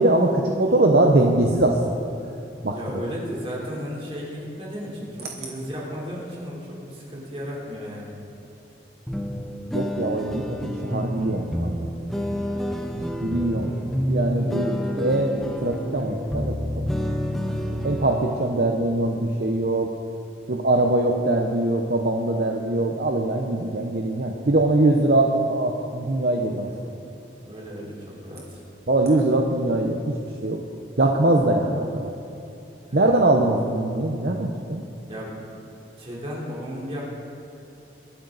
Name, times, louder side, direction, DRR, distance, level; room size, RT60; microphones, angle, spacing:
voice 1, 0.0-2.1 2.6-2.8 9.7-11.9 13.2-13.8 14.1-16.9 17.8-19.9 20.5-26.7 28.9-30.2 30.4-30.6 31.0-32.1 32.9-34.8, right 2 dB, 60° right, 1 dB, 0.8 m, -22 dB
voice 2, 2.7-8.1 13.6-14.1 14.3-14.9 17.3-17.6 26.7-26.9 27.4-28.6 32.9-33.2 35.1-35.5 36.0-37.0, equal, 30° right, -5 dB, 3.4 m, -35 dB
sound 1, 9.1-18.5, equal, ahead, 0.7 m, -29 dB
22.5 x 8.9 x 4.0 m, 2.8 s
head